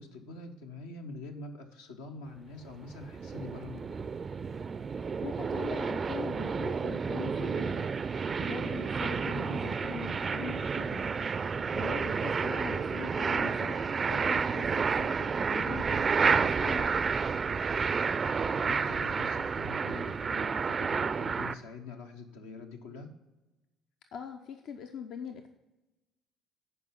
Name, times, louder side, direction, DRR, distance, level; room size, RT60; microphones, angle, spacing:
voice 1, 0.0-4.1 17.7-23.1, left 3 dB, 80° left, 2 dB, 0.9 m, -45 dB
sound 1, 2.6-21.6, right 5 dB, 35° right, 0.4 m, -30 dB
voice 2, 5.2-11.4 11.7-16.9 24.1-25.5, left 7 dB, 55° left, 6 dB, 0.6 m, -42 dB
11.0 x 4.8 x 5.7 m, 1.1 s
figure-of-eight pair, 50°, 0 cm